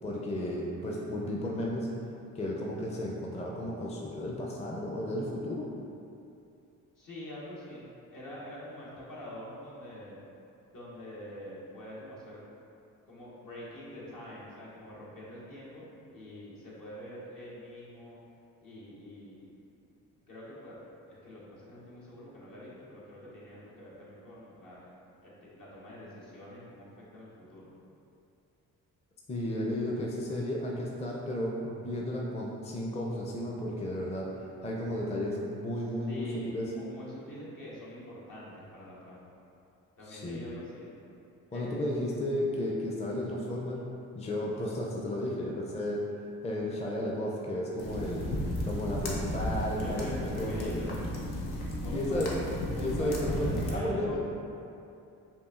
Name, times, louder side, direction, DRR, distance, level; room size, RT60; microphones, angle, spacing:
voice 1, 0.0-1.9 2.3-5.7 29.3-34.3 34.6-36.6 40.1-40.4 41.5-43.8 44.2-46.0 46.4-48.3 48.6-50.8 51.9-52.3 52.8-54.2, left 1 dB, 20° left, -3 dB, 0.5 m, -33 dB
voice 2, 7.0-7.9 8.1-10.2 10.7-12.6 13.1-15.8 16.1-18.2 18.6-19.5 20.3-20.8 21.1-24.9 25.2-27.7 36.1-39.3 40.0-40.9 41.5-41.9 49.5-51.0 51.8-52.3 52.7-54.2, left 1 dB, 60° left, -7 dB, 1.2 m, -45 dB
sound 1, 47.8-53.7, equal, 85° left, 0.7 m, -34 dB
5.3 x 2.4 x 2.4 m, 2.7 s
supercardioid pair, 55°, 36 cm